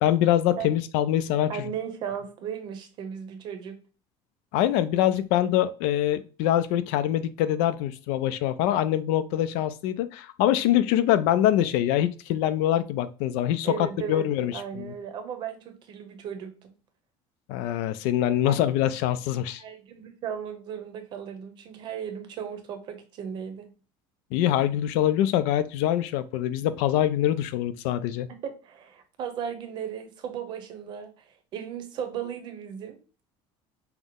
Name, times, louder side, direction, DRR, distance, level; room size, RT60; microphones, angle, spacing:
voice 1, 0.0-1.6 4.5-14.9 17.5-19.6 24.3-28.3, left 12 dB, 75° left, 13 dB, 0.4 m, -24 dB
voice 2, 1.5-3.8 13.6-16.7 19.6-23.7 28.4-33.0, right 8 dB, 40° right, 7 dB, 0.7 m, -36 dB
5.7 x 2.1 x 3.5 m, 0.36 s
cardioid pair, 170°, 12 cm